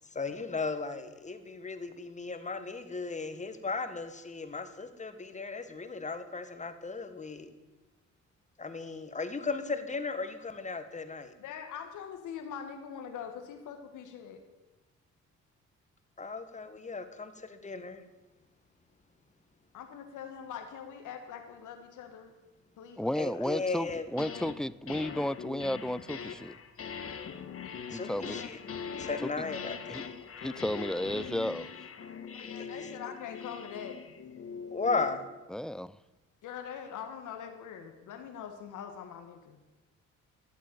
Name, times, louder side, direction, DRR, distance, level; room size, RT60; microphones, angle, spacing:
voice 1, 0.1-7.5 8.6-11.3 16.2-18.0 23.1-24.0 27.9-28.6 29.0-30.0 32.6-32.7 34.7-35.2, left 4 dB, 25° left, 9 dB, 1.6 m, -36 dB
voice 2, 11.4-14.4 19.7-22.3 22.8-23.5 32.3-34.0 36.4-39.6, left 8 dB, 80° left, 5 dB, 1.7 m, -43 dB
voice 3, 23.0-26.5 27.9-28.4 29.4-29.5 29.9-30.0 30.4-31.7 35.5-36.0, left 1 dB, ahead, 19 dB, 0.3 m, -33 dB
sound 1, 23.9-24.6 24.9-35.3, left 6 dB, 50° left, 1.5 m, -42 dB
12.5 x 8.4 x 9.0 m, 1.1 s
cardioid pair, 90°, 30 cm